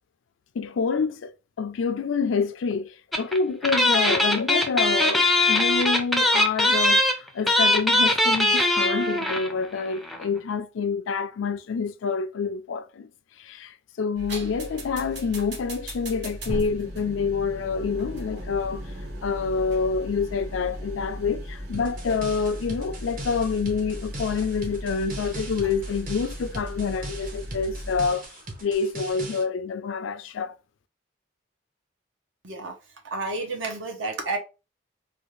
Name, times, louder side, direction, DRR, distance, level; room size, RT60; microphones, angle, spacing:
voice 1, 0.5-13.1 13.4-18.8 19.2-28.3 28.6-30.6, left 5 dB, 75° left, 0.4 m, -27 dB
sound 1, 3.1-3.4 3.6-9.5 9.8-9.9 10.1-10.2, left 1 dB, ahead, 0.4 m, -21 dB
sound 2, 14.1-28.1, equal, 60° right, 1.2 m, -37 dB
sound 3, 21.7-29.4, right 2 dB, 45° right, 0.8 m, -40 dB
voice 2, 32.4-32.8 33.0-34.4, right 3 dB, 75° right, 0.9 m, -30 dB
3.5 x 2.4 x 3.1 m
head